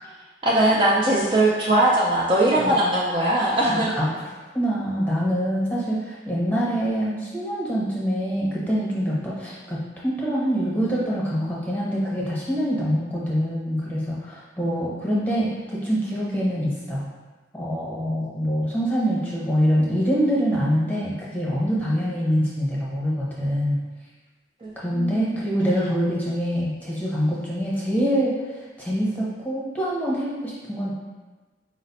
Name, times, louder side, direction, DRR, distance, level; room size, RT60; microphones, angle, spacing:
voice 1, 0.4-3.9 24.6-25.4, right 1 dB, 30° right, -5 dB, 0.4 m, -21 dB
voice 2, 2.5-2.9 3.6-4.0 4.5-17.1 17.5-23.8 24.8-28.3 28.8-30.9, equal, 10° left, -7 dB, 0.9 m, -25 dB
5.0 x 2.0 x 4.0 m, 1.3 s
head